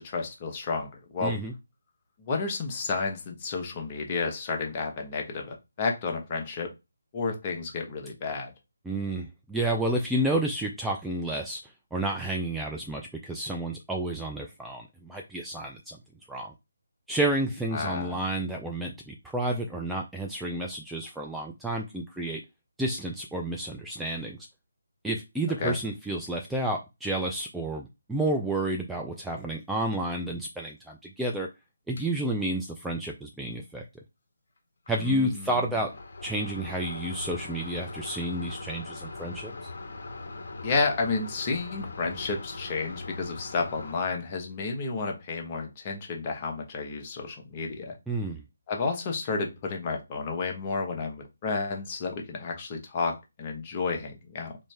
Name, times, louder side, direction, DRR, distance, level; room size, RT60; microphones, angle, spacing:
voice 1, 0.0-1.4 2.2-6.7 7.1-8.5 17.7-18.2 25.6-25.8 35.0-35.6 40.6-48.0 48.7-54.6, left 4 dB, 30° left, 0.8 m, -31 dB
voice 2, 1.2-1.5 8.9-16.0 16.3-16.5 17.1-22.4 22.8-24.4 25.0-31.5 31.9-33.8 34.9-35.9 36.2-39.5 48.1-48.4, right 1 dB, 5° right, 0.3 m, -30 dB
sound 1, 32.0-32.1 34.9-35.0 35.2-43.9, left 3 dB, 55° left, 0.9 m, -41 dB
3.2 x 2.6 x 3.2 m
figure-of-eight pair, 155°, 0 cm